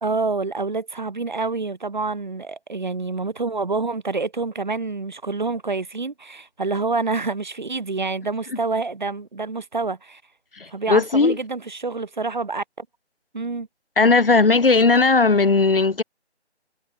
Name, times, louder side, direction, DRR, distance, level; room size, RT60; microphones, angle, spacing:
voice 1, 0.0-10.2 10.7-12.9 13.3-13.7, right 3 dB, 45° right, 0.8 m, -27 dB
voice 2, 10.9-11.4 14.0-16.0, left 4 dB, 55° left, 1.5 m, -16 dB
figure-of-eight pair, 155°, 34 cm